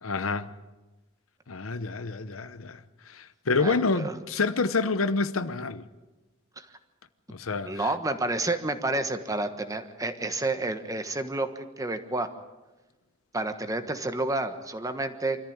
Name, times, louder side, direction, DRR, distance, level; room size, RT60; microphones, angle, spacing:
voice 1, 0.0-0.5 1.5-2.8 3.1-5.8 7.3-7.9, left 4 dB, 85° left, 0.9 m, -28 dB
voice 2, 3.6-4.1 6.6-6.7 7.6-12.3 13.3-15.4, right 2 dB, 15° right, 1.3 m, -30 dB
25.0 x 14.0 x 8.9 m
head